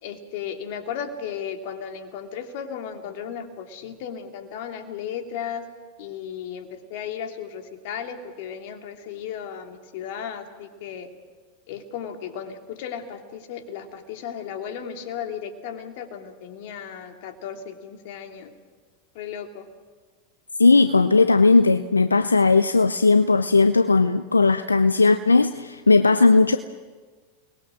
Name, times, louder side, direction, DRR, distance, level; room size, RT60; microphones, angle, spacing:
voice 1, 0.0-5.7 6.0-11.1 11.7-18.5 19.1-19.7, left 8 dB, 55° left, 5 dB, 2.8 m, -35 dB
voice 2, 20.6-26.6, left 3 dB, 90° left, 11 dB, 0.6 m, -17 dB
29.0 x 20.5 x 6.4 m, 1.4 s
figure-of-eight pair, 90°, 0 cm